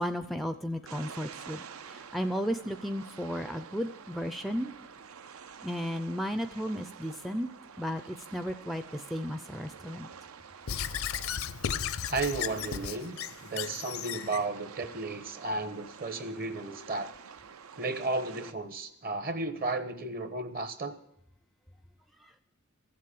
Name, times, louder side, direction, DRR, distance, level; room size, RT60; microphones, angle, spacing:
voice 1, 0.0-4.7 5.6-7.5 7.8-10.1 22.2-22.3, equal, ahead, 9 dB, 0.4 m, -34 dB
sound 1, 0.9-18.5, right 6 dB, 75° right, 0.6 m, -49 dB
Squeak / Writing, 10.7-14.4, left 8 dB, 70° left, 0.5 m, -35 dB
voice 2, 12.1-17.1 17.8-21.0, right 3 dB, 45° right, 10 dB, 1.1 m, -34 dB
14.5 x 7.6 x 8.4 m, 0.75 s
head